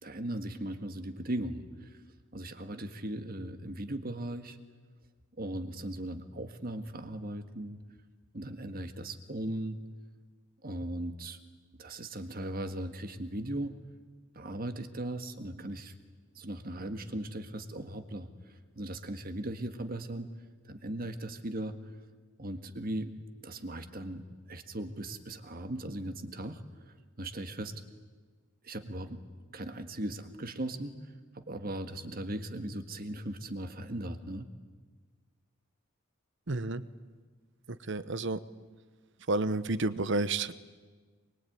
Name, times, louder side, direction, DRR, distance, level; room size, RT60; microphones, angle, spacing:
voice 1, 0.0-2.0 2.3-4.6 5.4-7.8 8.3-9.8 10.6-11.4 11.8-13.7 14.3-15.9 16.3-20.3 20.6-21.8 22.4-23.1 23.4-27.7 28.6-29.3 29.5-34.5, right 1 dB, 45° right, 8 dB, 1.7 m, -38 dB
voice 2, 36.5-36.8 37.9-38.4 39.3-40.5, right 2 dB, 60° right, 15 dB, 1.0 m, -30 dB
24.0 x 23.5 x 9.3 m, 1.4 s
head